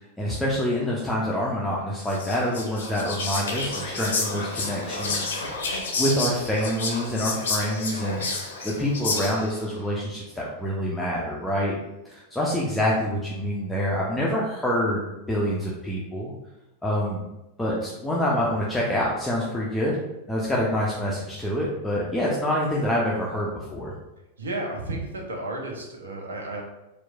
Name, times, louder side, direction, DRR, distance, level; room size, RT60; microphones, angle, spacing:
voice 1, 0.2-5.3 5.7-11.7 12.1-15.0 15.3-16.3 16.8-17.2 17.6-20.0 20.3-23.9, equal, 5° left, -5 dB, 0.4 m, -26 dB
Whispering, 2.0-9.6, left 3 dB, 60° left, 0.5 m, -30 dB
voice 2, 24.4-26.6, right 2 dB, 70° right, 1 dB, 0.5 m, -32 dB
2.9 x 2.1 x 2.2 m, 0.96 s
figure-of-eight pair, 90°, 0 cm